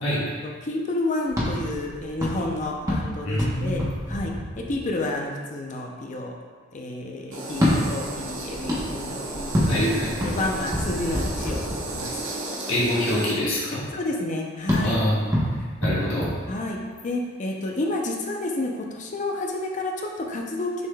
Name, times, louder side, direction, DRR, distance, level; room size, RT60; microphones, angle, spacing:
voice 1, 0.1-6.3 6.7-9.9 10.2-11.6 11.9-12.1 13.9-15.0 16.5-16.8 17.0-20.9, left 2 dB, 40° left, 1 dB, 0.5 m, -30 dB
sound 1, 1.3-5.1 7.5-12.3 14.7-17.1, equal, 15° right, 0.9 m, -28 dB
voice 2, 3.2-3.9 9.6-10.1 12.7-13.8 14.8-15.2 15.8-16.3, left 1 dB, 80° left, -8 dB, 1.2 m, -25 dB
sound 2, 7.3-13.3, right 2 dB, 70° right, 1.0 m, -34 dB
6.1 x 3.5 x 2.3 m, 1.5 s
head